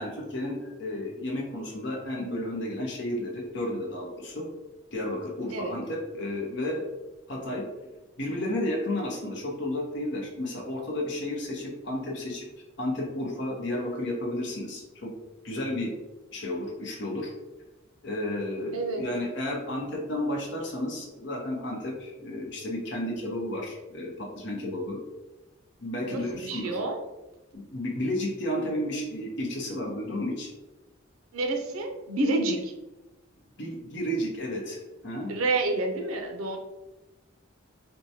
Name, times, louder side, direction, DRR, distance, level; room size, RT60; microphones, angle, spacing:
voice 1, 0.0-4.4 4.9-6.8 7.3-7.6 8.2-12.5 12.8-15.1 15.4-15.9 16.3-17.3 18.0-25.0 25.8-26.8 27.5-30.5 33.6-35.3, left 1 dB, 55° left, -1 dB, 0.8 m, -32 dB
voice 2, 26.1-27.0 31.3-32.7 35.3-36.6, right 2 dB, 90° right, 4 dB, 0.6 m, -29 dB
4.5 x 2.2 x 2.7 m, 1.1 s
head